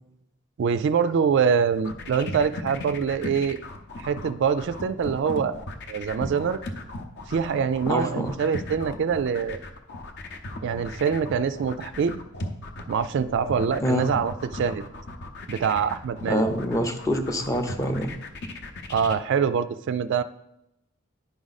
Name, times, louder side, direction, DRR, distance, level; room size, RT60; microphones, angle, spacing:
voice 1, 0.6-3.6 4.0-5.6 5.9-6.6 7.3-9.6 10.6-12.2 12.9-14.8 15.5-16.5 18.9-20.2, right 6 dB, 55° right, 12 dB, 0.3 m, -24 dB
sound 1, 1.7-19.2, left 2 dB, 50° left, 0.7 m, -37 dB
voice 2, 7.9-8.3 13.8-14.0 16.3-18.1, equal, 15° left, 6 dB, 0.6 m, -25 dB
10.0 x 4.9 x 4.0 m, 0.84 s
head